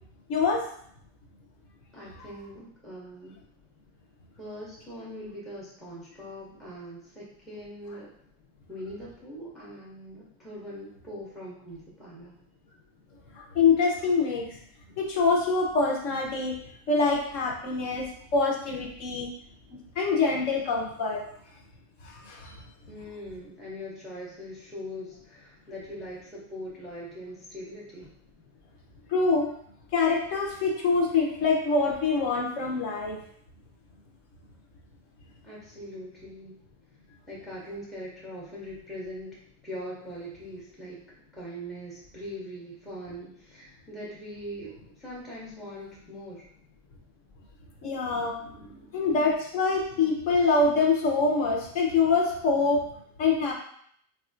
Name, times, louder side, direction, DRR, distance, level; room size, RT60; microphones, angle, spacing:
voice 1, 0.3-0.7 13.3-14.6 15.0-16.6 16.9-19.3 19.7-21.2 22.0-22.6 29.1-29.5 29.9-33.2 47.8-48.4 48.9-52.9 53.2-53.5, left 4 dB, 50° left, 0 dB, 0.8 m, -25 dB
voice 2, 1.9-3.3 4.4-8.1 8.7-12.3 22.9-28.1 35.4-36.6 37.3-39.3 39.6-41.0 41.3-46.4 48.0-48.9, equal, ahead, -7 dB, 0.5 m, -41 dB
3.4 x 2.4 x 2.5 m, 0.66 s
supercardioid pair, 130°, 49 cm